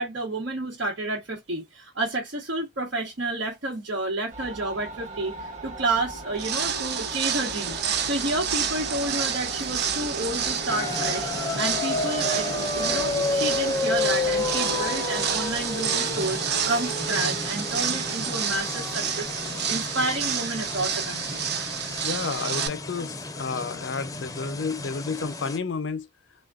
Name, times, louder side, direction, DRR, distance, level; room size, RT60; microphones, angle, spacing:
voice 1, 0.0-19.3 19.7-21.4, right 2 dB, 90° right, 1.0 m, -30 dB
sound 1, 4.3-22.0, right 1 dB, 40° right, 1.0 m, -38 dB
sound 2, 6.4-22.7, right 7 dB, 60° right, 0.6 m, -29 dB
sound 3, 10.7-25.6, left 3 dB, 20° left, 0.5 m, -31 dB
voice 2, 22.0-26.1, left 4 dB, 75° left, 0.5 m, -31 dB
3.4 x 2.2 x 2.3 m
head